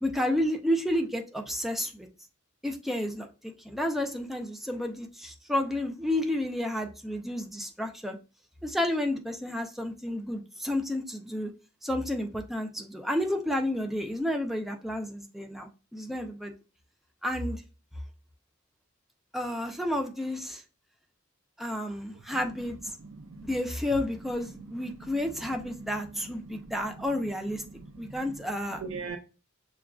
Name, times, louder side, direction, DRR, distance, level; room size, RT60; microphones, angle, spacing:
voice 1, 0.0-2.1 2.6-8.2 8.6-11.5 11.8-16.5 17.2-17.6 19.3-20.6 21.6-23.0 23.4-27.6 28.0-28.8, left 1 dB, ahead, 0.4 m, -31 dB
voice 2, 22.6-23.6 24.2-29.2, right 4 dB, 90° right, 0.5 m, -44 dB
6.0 x 2.3 x 2.3 m
head